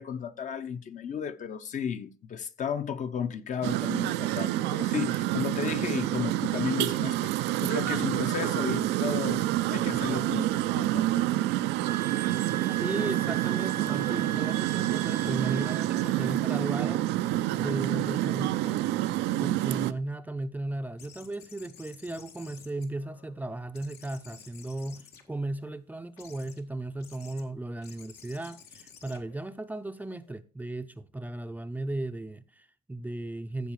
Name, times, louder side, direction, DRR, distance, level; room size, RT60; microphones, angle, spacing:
voice 1, 0.0-11.5, left 7 dB, 45° left, 0.8 m, -34 dB
sound 1, 3.6-19.9, right 15 dB, 90° right, 0.5 m, -28 dB
sound 2, 11.8-16.1, right 11 dB, 55° right, 0.7 m, -38 dB
voice 2, 12.7-18.9 19.4-33.7, right 2 dB, 10° right, 0.5 m, -36 dB
sound 3, 21.0-23.4 23.7-25.7 26.2-26.6 27.0-27.4 27.8-30.3, left 7 dB, 80° left, 1.9 m, -53 dB
14.5 x 4.9 x 4.7 m
cardioid pair, 110°, 17 cm